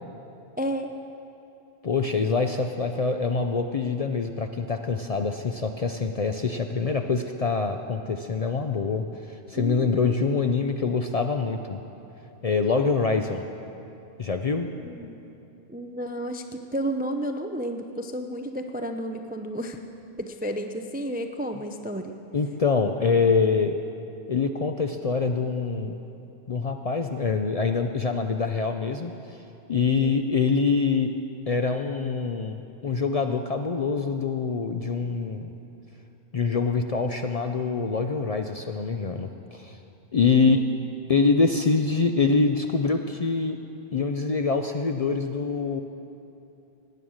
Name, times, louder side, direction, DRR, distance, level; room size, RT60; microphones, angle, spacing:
voice 1, 0.6-0.9 9.5-10.2 14.8-15.2 15.7-19.8 20.2-22.1 29.9-30.2 40.3-40.7, right 1 dB, 15° right, 6 dB, 0.3 m, -32 dB
voice 2, 1.8-11.8 12.4-13.4 14.2-14.7 22.3-23.8 24.3-26.0 26.5-29.4 29.7-31.1 31.5-35.5 36.3-39.8 40.1-40.6 41.1-43.6 43.9-45.8, left 4 dB, 45° left, 5 dB, 0.5 m, -25 dB
18.5 x 8.8 x 6.3 m, 2.8 s
omnidirectional pair, 1.1 m